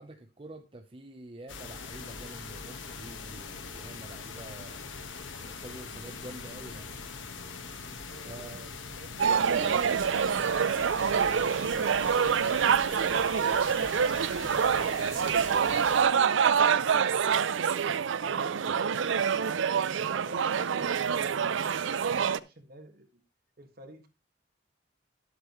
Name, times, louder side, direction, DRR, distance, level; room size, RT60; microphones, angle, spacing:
voice 1, 0.0-4.9 5.2-6.9 8.3-8.7 9.2-10.2, right 2 dB, 30° right, 0.7 m, -46 dB
sound 1, 1.5-16.0, left 5 dB, 85° left, 1.2 m, -42 dB
voice 2, 8.1-13.3 16.6-17.5 18.2-21.9 22.2-23.2 23.6-24.1, right 1 dB, 50° right, 1.7 m, -49 dB
sound 2, 9.2-22.4, right 7 dB, 80° right, 0.5 m, -26 dB
11.0 x 8.1 x 3.0 m
head